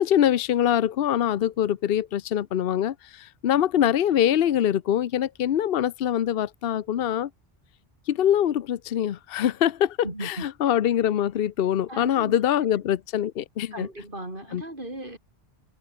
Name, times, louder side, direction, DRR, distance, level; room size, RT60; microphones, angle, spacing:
voice 1, 0.0-7.3 8.1-13.9 14.5-14.6, left 10 dB, 70° left, 0.9 m, -24 dB
voice 2, 10.0-10.5 11.9-12.4 13.7-15.2, right 1 dB, 55° right, 6.0 m, -36 dB
omnidirectional pair, 1.1 m